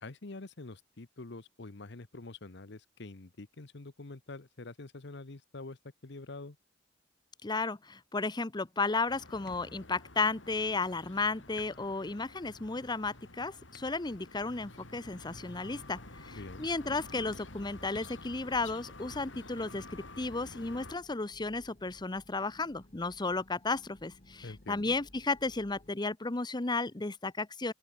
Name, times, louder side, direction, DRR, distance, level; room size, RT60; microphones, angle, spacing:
voice 1, 0.0-6.6 16.3-16.7 24.4-24.9, left 2 dB, 65° left, 1.1 m, -46 dB
voice 2, 7.4-27.7, left 3 dB, 25° left, 0.9 m, -34 dB
sound 1, 9.1-20.9, left 2 dB, 90° left, 5.7 m, -50 dB
sound 2, 15.4-25.9, left 1 dB, 40° left, 2.1 m, -60 dB
open air
head